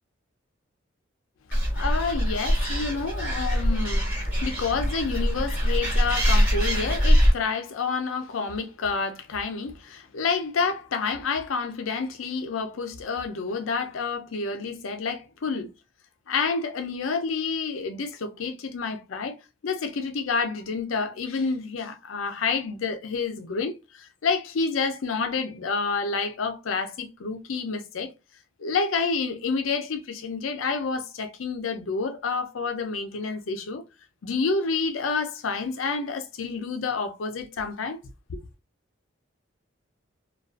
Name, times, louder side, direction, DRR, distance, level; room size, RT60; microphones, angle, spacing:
Animal, 1.5-7.3, equal, 10° right, 1.2 m, -23 dB
voice 1, 1.7-4.1 4.4-15.7 16.3-19.4 19.6-28.1 28.6-33.8 34.2-38.0 38.3-38.4, left 4 dB, 80° left, 0.5 m, -29 dB
2.4 x 2.3 x 2.3 m
head